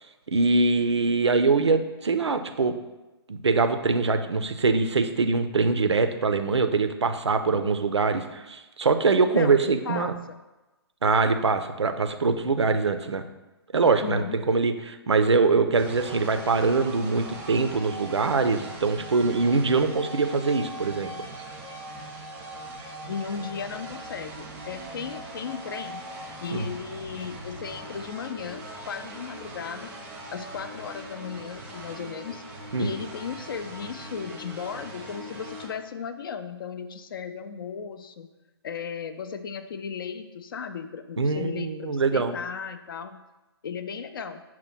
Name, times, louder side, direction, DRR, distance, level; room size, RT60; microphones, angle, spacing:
voice 1, 0.3-2.7 3.3-10.1 11.0-13.2 13.7-21.1 26.5-26.7 32.7-32.9 41.2-42.4, right 4 dB, 80° right, 8 dB, 0.4 m, -23 dB
voice 2, 9.3-10.2 14.0-14.4 23.1-26.0 26.4-29.9 30.3-32.4 32.8-38.3 38.6-43.3 43.6-44.4, left 6 dB, 55° left, 10 dB, 0.4 m, -36 dB
sound 1, 15.8-35.7, right 1 dB, 15° right, 0.6 m, -41 dB
5.7 x 2.1 x 4.3 m, 1.1 s
figure-of-eight pair, 125°, 14 cm